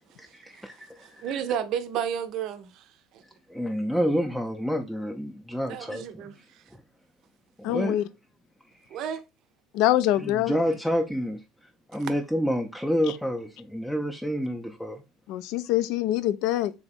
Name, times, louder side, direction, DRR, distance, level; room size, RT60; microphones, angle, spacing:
voice 1, 0.2-1.3 3.5-6.4 6.7-6.8 7.6-8.1 8.7-9.0 10.1-15.0, equal, ahead, 0.5 m, -29 dB
voice 2, 1.2-2.8 3.1-3.2 5.7-6.3 8.9-9.2, right 9 dB, 60° right, 0.5 m, -31 dB
voice 3, 7.6-8.0 9.7-10.5 15.3-16.7, left 14 dB, 70° left, 0.3 m, -24 dB
3.5 x 2.9 x 4.2 m
supercardioid pair, 95°, 0 cm